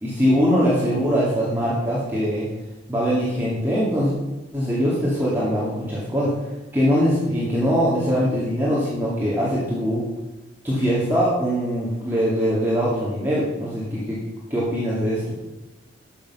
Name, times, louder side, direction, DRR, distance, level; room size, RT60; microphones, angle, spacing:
voice 1, 0.0-2.5 2.9-4.1 4.5-6.4 6.7-10.1 10.6-14.2 14.5-15.3, equal, 10° right, -8 dB, 2.5 m, -22 dB
12.5 x 7.2 x 5.7 m, 1.0 s
head